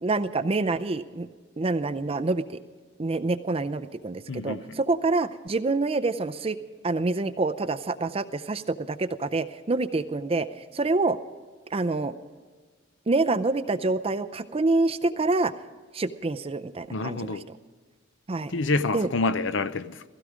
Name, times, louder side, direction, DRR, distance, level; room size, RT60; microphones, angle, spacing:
voice 1, 0.0-1.3 1.6-2.6 3.0-6.6 6.8-10.5 10.7-11.2 11.7-12.2 13.1-15.5 15.9-17.4 18.3-18.5 18.9-19.1, right 3 dB, 30° right, 0.5 m, -26 dB
voice 2, 4.3-4.8 16.9-17.4 18.5-20.0, left 3 dB, 70° left, 0.6 m, -27 dB
16.0 x 16.0 x 5.0 m
head